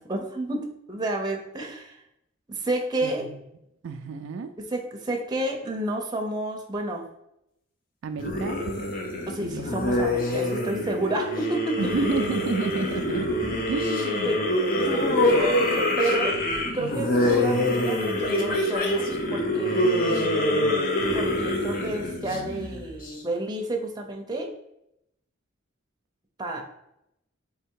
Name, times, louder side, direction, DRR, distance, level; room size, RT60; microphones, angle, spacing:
voice 1, 0.1-0.6 0.9-2.0 2.6-3.3 4.6-7.0 9.3-11.9 14.2-16.4 16.7-20.2 21.1-24.5 26.4-26.6, right 2 dB, 20° right, 2 dB, 0.6 m, -30 dB
voice 2, 3.0-3.4 3.8-4.5 8.0-8.7 9.4-9.5 11.8-13.3 13.7-14.4 19.8-20.7, right 4 dB, 70° right, 7 dB, 0.3 m, -31 dB
sound 1, 8.2-23.1, left 1 dB, 45° left, 0.7 m, -25 dB
3.4 x 3.4 x 4.6 m, 0.81 s
head